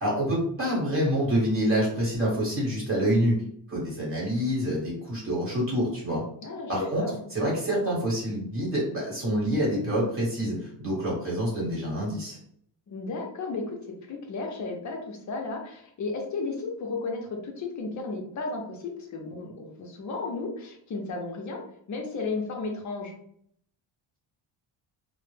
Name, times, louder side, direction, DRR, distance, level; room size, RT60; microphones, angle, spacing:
voice 1, 0.0-3.3 3.7-6.2 6.7-12.4, equal, 25° right, -6 dB, 1.1 m, -27 dB
voice 2, 6.4-7.2 12.9-13.8 14.1-21.6 21.9-23.1, left 3 dB, 40° left, 2 dB, 0.5 m, -34 dB
2.1 x 2.0 x 3.1 m, 0.67 s
cardioid pair, 155°, 47 cm